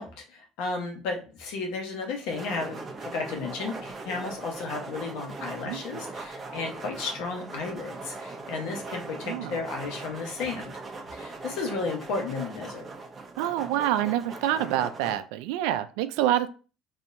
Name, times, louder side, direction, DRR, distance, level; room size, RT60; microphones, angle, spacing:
voice 1, 0.0-10.8 11.1-12.9, left 4 dB, 75° left, 1.1 m, -34 dB
sound 1, 2.3-15.2, right 3 dB, 25° right, 0.9 m, -40 dB
voice 2, 9.3-9.6 13.4-16.5, right 12 dB, 85° right, 0.4 m, -27 dB
4.2 x 2.7 x 2.6 m
supercardioid pair, 100°, 0 cm